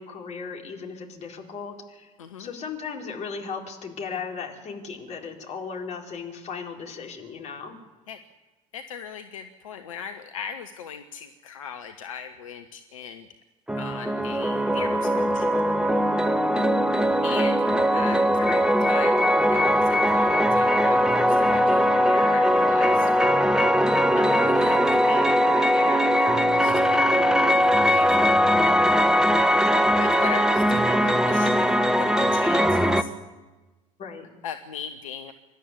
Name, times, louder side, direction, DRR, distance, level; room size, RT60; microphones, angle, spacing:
voice 1, 0.0-2.1 2.4-7.8 16.5-16.7 29.5-29.8 34.0-34.2, left 5 dB, 40° left, 1 dB, 4.3 m, -36 dB
voice 2, 2.2-2.5 8.1-8.2 8.7-13.3 13.8-15.5 17.2-23.1 24.2-28.4 29.9-33.1 34.4-35.3, left 7 dB, 70° left, 8 dB, 1.0 m, -38 dB
sound 1, 13.7-33.0, equal, 5° right, 1.2 m, -20 dB
26.5 x 12.0 x 9.8 m, 1.2 s
figure-of-eight pair, 60°, 18 cm